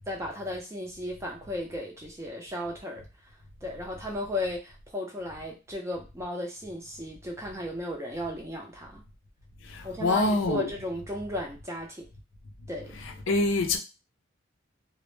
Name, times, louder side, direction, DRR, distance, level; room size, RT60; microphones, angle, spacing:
voice 1, 0.1-9.0 9.8-12.1 12.7-13.0, left 1 dB, 15° right, 0.4 m, -35 dB
voice 2, 9.6-10.7 13.3-13.8, left 2 dB, 75° left, 0.4 m, -25 dB
2.0 x 2.0 x 3.0 m
head